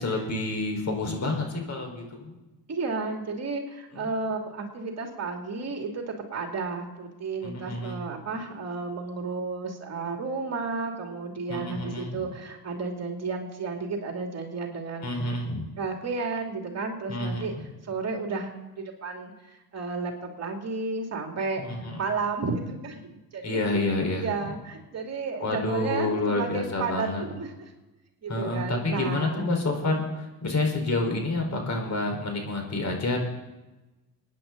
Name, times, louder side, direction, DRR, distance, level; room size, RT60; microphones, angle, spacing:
voice 1, 0.0-2.4 3.9-4.0 7.4-8.0 11.5-12.2 15.0-15.7 17.1-17.6 21.6-22.0 23.4-24.3 25.4-27.2 28.3-33.2, left 2 dB, 40° left, 2 dB, 4.7 m, -28 dB
voice 2, 2.7-15.1 15.8-17.5 17.8-18.5 18.7-21.6 22.0-23.6 24.2-27.7 28.2-29.5 29.8-30.1, right 4 dB, 35° right, 2 dB, 2.7 m, -32 dB
24.5 x 10.0 x 3.9 m, 1.1 s
hypercardioid pair, 75°, 43 cm